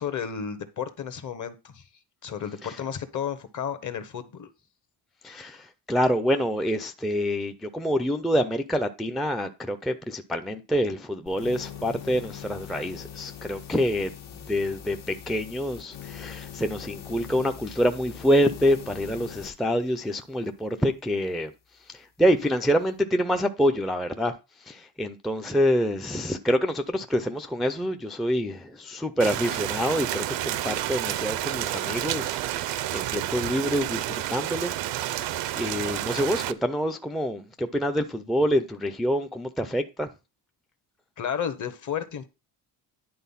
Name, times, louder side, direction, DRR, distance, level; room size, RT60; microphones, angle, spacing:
voice 1, 0.0-1.8 2.2-4.5 41.2-42.3, left 8 dB, 45° left, 1.0 m, -32 dB
voice 2, 5.2-21.5 21.9-35.3 35.6-40.1, equal, ahead, 0.3 m, -26 dB
sound 1, 11.3-19.5, left 9 dB, 90° left, 1.8 m, -42 dB
Rain, 29.2-36.5, right 14 dB, 90° right, 0.7 m, -30 dB
10.5 x 3.8 x 5.6 m
cardioid pair, 160°, 42 cm